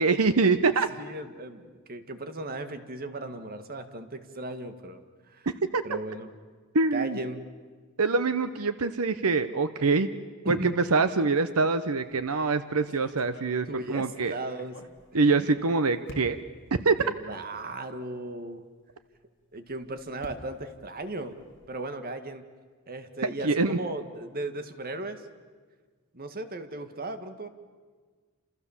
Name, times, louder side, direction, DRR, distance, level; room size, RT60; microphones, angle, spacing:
voice 1, 0.0-0.9 5.7-5.8 6.7-7.2 8.0-10.1 10.5-14.4 15.1-16.4 16.8-17.1 23.2-23.8, right 4 dB, 85° right, 11 dB, 0.9 m, -24 dB
voice 2, 0.9-5.5 5.8-6.3 6.9-7.5 10.4-10.8 13.7-14.8 15.2-15.5 17.0-18.6 19.5-21.4 21.7-22.4 22.9-25.2 26.1-27.5, right 2 dB, 45° right, 8 dB, 1.9 m, -36 dB
sound 1, 12.0-12.3 12.9-15.6 16.1-16.6 17.4-17.5 17.8-17.9 19.5-21.8, left 1 dB, 55° left, 2.7 m, -49 dB
29.0 x 28.0 x 7.3 m, 1.5 s
head